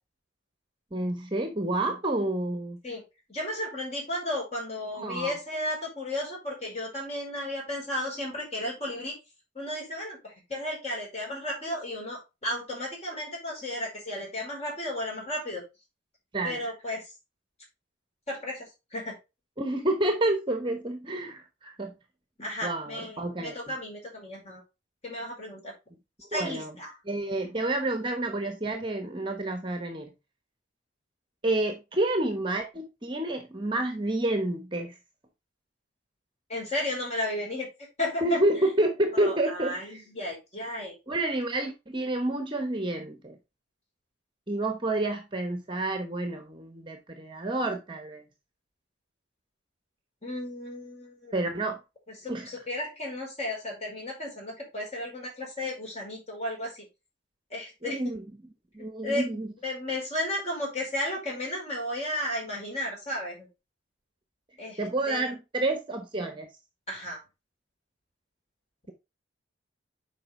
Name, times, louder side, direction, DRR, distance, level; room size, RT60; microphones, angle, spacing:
voice 1, 0.9-2.8 5.0-5.3 16.3-16.6 19.6-21.9 22.6-23.8 26.3-26.7 27.1-30.1 31.4-34.9 38.2-40.0 41.1-43.3 44.5-48.2 51.3-51.8 52.3-52.5 57.8-58.2 58.7-59.5 64.8-66.5, right 1 dB, 25° right, 1.0 m, -29 dB
voice 2, 3.3-9.2 9.5-15.6 16.4-17.0 18.3-19.2 22.4-24.6 25.0-25.7 26.3-26.9 36.5-37.7 38.0-38.7 39.1-40.9 50.2-51.3 52.1-56.9 57.5-58.0 58.8-63.5 64.6-65.3 66.9-67.2, left 1 dB, 35° left, 4.7 m, -34 dB
7.7 x 5.0 x 3.7 m
head